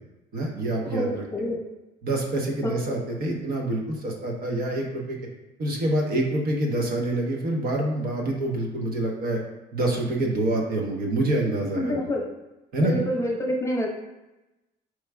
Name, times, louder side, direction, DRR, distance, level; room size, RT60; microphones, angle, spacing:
voice 1, 0.3-1.2 2.0-5.2 5.6-9.4 9.7-12.0 12.7-12.9, right 1 dB, 60° right, 0 dB, 1.0 m, -26 dB
voice 2, 0.9-1.6 2.6-2.8 11.8-12.2 12.8-13.9, left 1 dB, 15° left, -1 dB, 0.9 m, -27 dB
4.7 x 4.5 x 2.3 m, 1.0 s
cardioid pair, 110°, 17 cm